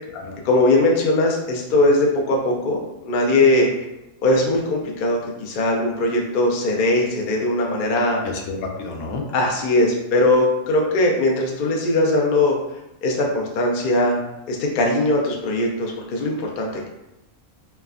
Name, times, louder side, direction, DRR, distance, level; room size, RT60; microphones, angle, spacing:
voice 1, 0.4-3.7 4.2-8.2 9.3-12.6 13.0-14.1 14.5-16.9, left 2 dB, 65° left, 0 dB, 0.5 m, -20 dB
voice 2, 8.2-9.2, left 3 dB, 85° left, 1 dB, 1.0 m, -30 dB
3.2 x 2.1 x 2.4 m, 0.90 s
omnidirectional pair, 1.4 m